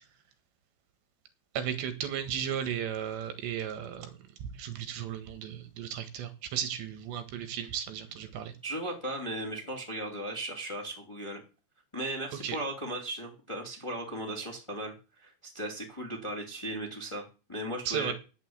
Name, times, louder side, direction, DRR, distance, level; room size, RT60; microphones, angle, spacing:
voice 1, 1.6-4.1 4.4-8.5 12.4-12.6 17.9-18.1, right 9 dB, 80° right, 9 dB, 3.8 m, -35 dB
voice 2, 8.6-11.4 11.9-17.2 17.5-18.1, right 1 dB, 10° left, 1 dB, 2.0 m, -37 dB
10.0 x 8.3 x 8.0 m, 0.33 s
omnidirectional pair, 5.1 m